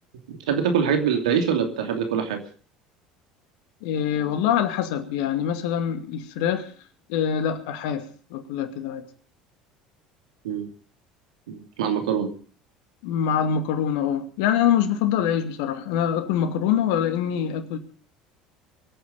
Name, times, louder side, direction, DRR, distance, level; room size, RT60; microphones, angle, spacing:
voice 1, 0.3-2.4 10.4-10.7 11.5-12.3, right 7 dB, 80° right, 5 dB, 2.7 m, -24 dB
voice 2, 3.8-6.7 7.1-9.1 13.0-17.8, left 9 dB, 70° left, 8 dB, 2.3 m, -24 dB
22.5 x 9.2 x 6.8 m, 0.43 s
hypercardioid pair, 70°, 4 cm